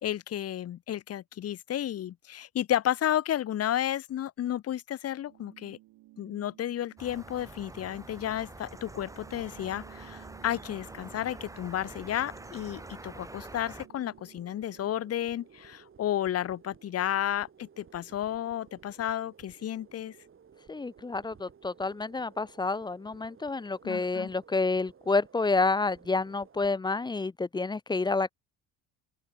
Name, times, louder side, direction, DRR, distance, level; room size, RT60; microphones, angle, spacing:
voice 1, 0.0-5.8 6.2-20.2 23.8-24.3, left 11 dB, 40° left, 1.0 m, -32 dB
sound 1, 5.3-15.3, right 18 dB, 70° right, 6.3 m, -57 dB
sound 2, 7.0-13.9, right 2 dB, 10° right, 1.8 m, -46 dB
sound 3, 8.5-26.7, right 7 dB, 35° right, 5.1 m, -57 dB
voice 2, 20.7-28.3, left 3 dB, 10° left, 0.6 m, -29 dB
open air
supercardioid pair, 95°, 36 cm